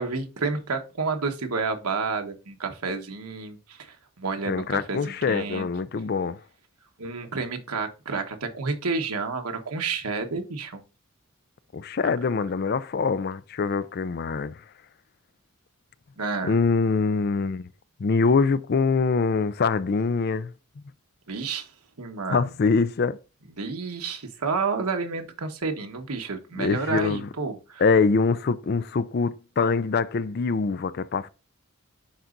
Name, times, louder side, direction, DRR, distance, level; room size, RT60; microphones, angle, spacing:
voice 1, 0.0-5.7 7.0-10.8 16.2-16.5 21.3-21.7 22.0-22.5 23.6-27.8, right 4 dB, 85° right, 1.2 m, -30 dB
voice 2, 4.4-6.4 11.7-14.6 16.4-17.7 18.0-20.5 22.3-23.2 26.6-27.3 27.8-31.3, left 4 dB, 45° left, 0.4 m, -24 dB
10.5 x 4.0 x 2.5 m
head